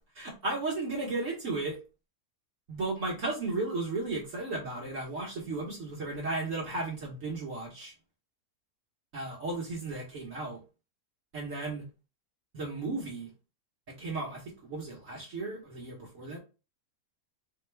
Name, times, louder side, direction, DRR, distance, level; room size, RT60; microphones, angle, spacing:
voice 1, 0.1-1.8 2.7-7.9 9.1-10.6 11.3-11.9 12.5-13.3 13.9-16.4, right 3 dB, 60° right, -3 dB, 1.4 m, -35 dB
4.3 x 2.3 x 3.3 m, 0.31 s
omnidirectional pair, 1.6 m